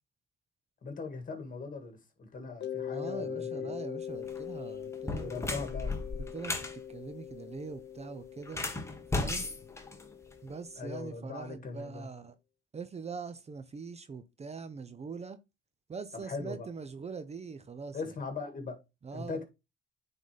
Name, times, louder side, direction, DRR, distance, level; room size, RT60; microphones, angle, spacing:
voice 1, 0.8-3.8 5.2-6.0 10.8-12.1 16.2-16.7 17.9-18.8 19.1-19.4, left 4 dB, 45° left, 2.0 m, -40 dB
Mallet percussion, 2.6-11.2, left 9 dB, 60° left, 0.6 m, -42 dB
voice 2, 2.9-5.5 6.1-8.7 9.1-9.5 10.4-12.3 12.7-15.4 15.9-18.1 19.0-19.4, right 5 dB, 35° right, 0.7 m, -43 dB
sound 1, 4.1-4.4 4.9-6.8 8.4-10.5, left 3 dB, 15° left, 1.3 m, -35 dB
9.2 x 4.0 x 3.3 m
cardioid pair, 90°, 20 cm